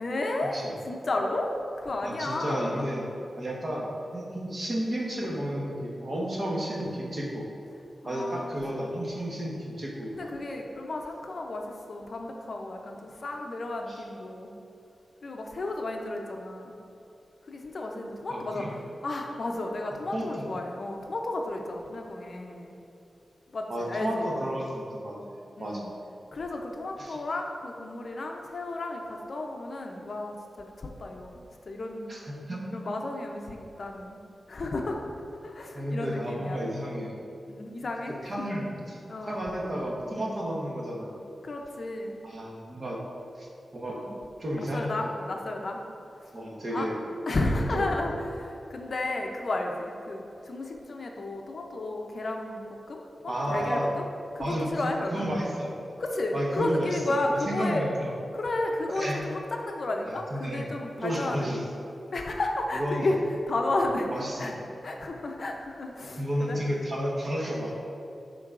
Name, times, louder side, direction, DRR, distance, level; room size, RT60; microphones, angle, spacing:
voice 1, 0.0-0.6 0.9-1.5 1.8-2.9 8.0-8.6 10.1-14.5 15.2-16.7 17.4-22.7 23.5-24.3 25.6-25.9 26.3-32.2 32.7-34.2 34.5-35.0 35.4-36.6 37.5-38.5 39.1-39.4 41.4-42.2 43.9-44.2 44.6-45.8 46.2-46.3 46.7-46.9 47.3-54.1 54.3-55.2 56.0-57.9 58.3-61.6 62.1-64.5 64.8-66.6, left 2 dB, 50° left, 2 dB, 0.5 m, -33 dB
voice 2, 2.0-3.0 3.4-7.5 8.0-10.3 13.9-14.0 18.3-18.7 20.1-20.5 23.7-25.9 27.0-27.2 32.1-32.6 35.7-37.2 38.2-39.0 39.3-41.1 42.2-43.0 43.4-44.0 44.4-44.9 46.3-47.0 47.3-48.0 53.3-53.8 54.4-55.7 56.3-57.0 57.5-58.1 58.9-59.2 60.3-60.6 61.0-61.6 62.7-63.1 64.1-64.6 66.2-67.7, equal, 40° right, -3 dB, 1.0 m, -32 dB
11.0 x 3.8 x 2.4 m, 2.7 s
wide cardioid pair, 145°, 0 cm